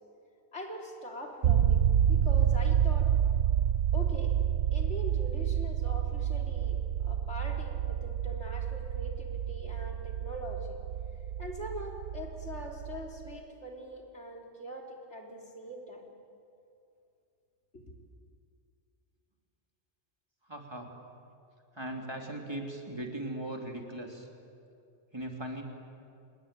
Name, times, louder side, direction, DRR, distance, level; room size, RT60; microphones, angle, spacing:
voice 1, 0.5-3.1 3.9-4.4 4.7-10.8 11.4-16.0 17.7-17.9, left 1 dB, 75° left, 0 dB, 4.0 m, -43 dB
sound 1, 1.4-13.4, right 9 dB, 70° right, 1.1 m, -29 dB
voice 2, 20.5-20.9 21.7-24.3 25.1-25.6, right 1 dB, 20° right, 2 dB, 3.2 m, -38 dB
28.0 x 20.5 x 9.0 m, 2.5 s
omnidirectional pair, 1.2 m